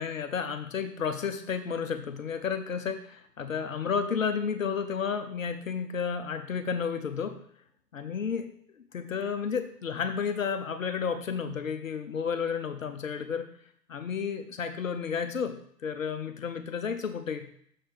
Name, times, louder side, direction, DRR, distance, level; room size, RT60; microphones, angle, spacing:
voice 1, 0.0-7.4 7.9-8.5 8.9-13.5 13.9-17.5, left 6 dB, 55° left, 8 dB, 0.6 m, -32 dB
6.5 x 4.4 x 4.7 m, 0.63 s
figure-of-eight pair, 125°, 49 cm